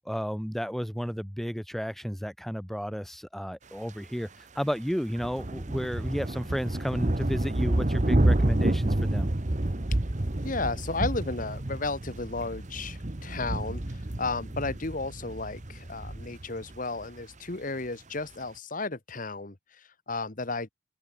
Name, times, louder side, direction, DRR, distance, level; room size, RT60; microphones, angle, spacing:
voice 1, 0.0-9.3, equal, ahead, 5.0 m, -32 dB
sound 1, 5.2-17.1, right 1 dB, 35° right, 1.1 m, -29 dB
voice 2, 10.4-20.7, left 3 dB, 40° left, 1.4 m, -34 dB
head